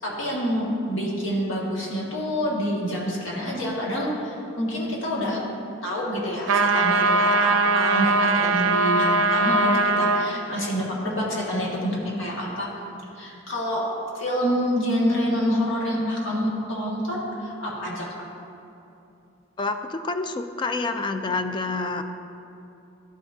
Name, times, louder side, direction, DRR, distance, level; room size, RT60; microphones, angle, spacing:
voice 1, 0.0-5.4 5.8-12.7 13.2-13.9 14.1-18.1, equal, 70° left, -4 dB, 1.7 m, -27 dB
sound 1, 6.5-10.3, right 3 dB, 80° right, 0.5 m, -21 dB
voice 2, 19.6-22.1, left 3 dB, 25° left, 8 dB, 0.3 m, -28 dB
12.5 x 5.8 x 2.7 m, 2.8 s
head